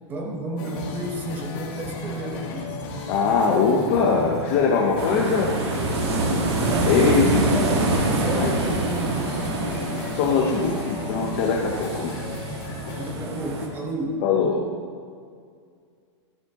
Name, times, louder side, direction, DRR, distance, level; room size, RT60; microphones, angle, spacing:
voice 1, 0.1-2.8 6.6-9.7 12.9-14.2, right 2 dB, 10° right, 1 dB, 0.9 m, -32 dB
sound 1, 0.6-13.1, left 2 dB, 45° left, 2.4 m, -34 dB
voice 2, 3.1-5.5 6.8-7.8 8.3-8.5 10.1-12.2 14.2-14.7, left 5 dB, 25° left, -1 dB, 0.7 m, -22 dB
sound 2, 5.0-13.7, right 2 dB, 55° right, 1.7 m, -26 dB
13.5 x 9.5 x 3.6 m, 2.2 s
supercardioid pair, 180°, 16 cm